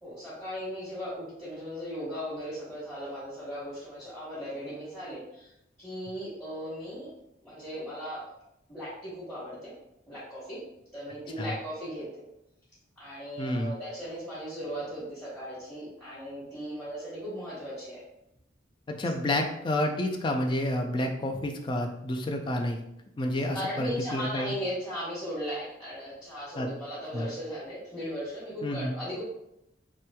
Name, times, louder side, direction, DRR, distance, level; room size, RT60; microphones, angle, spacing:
voice 1, 0.0-5.5 5.8-7.1 7.4-8.3 8.7-9.7 10.1-10.6 10.9-12.2 13.0-18.0 23.5-29.3, equal, 10° left, -14 dB, 1.1 m, -37 dB
voice 2, 13.4-13.7 18.9-22.8 23.2-24.5 26.6-26.7 27.1-27.3 28.6-28.9, left 1 dB, 25° left, 3 dB, 0.3 m, -29 dB
3.2 x 3.0 x 2.2 m, 0.82 s
head